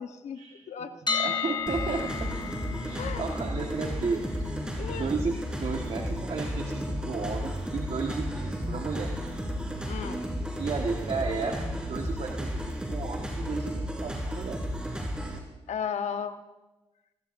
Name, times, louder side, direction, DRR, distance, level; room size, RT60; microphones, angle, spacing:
voice 1, 0.0-0.4 0.7-0.9 3.0-3.2 4.8-5.1 9.9-10.3 15.7-16.4, left 7 dB, 80° left, 8 dB, 1.1 m, -34 dB
sound 1, 1.1-13.0, left 6 dB, 40° left, 1.3 m, -39 dB
voice 2, 1.1-2.5 2.8-4.5 4.9-9.1 10.6-11.6 11.9-14.6, right 4 dB, 60° right, 1 dB, 1.5 m, -33 dB
sound 2, 1.7-15.4, equal, 10° right, 4.9 m, -33 dB
25.5 x 15.5 x 2.6 m, 1.1 s
cardioid pair, 65°, 12 cm